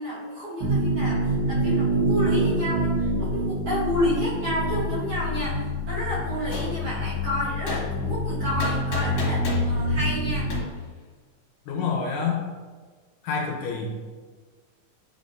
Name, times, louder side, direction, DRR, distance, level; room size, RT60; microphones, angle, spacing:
voice 1, 0.0-10.5, equal, 50° right, -10 dB, 2.1 m, -30 dB
sound 1, 0.6-10.6, equal, 90° right, 1.0 m, -26 dB
Gunshot gunfire, 6.5-6.7 7.7-7.8 8.6-9.7 10.5-10.6, left 4 dB, 60° left, 2.6 m, -33 dB
voice 2, 11.7-12.4 13.2-14.0, left 5 dB, 80° left, 0 dB, 2.1 m, -27 dB
9.9 x 3.7 x 2.5 m, 1.4 s
omnidirectional pair, 4.0 m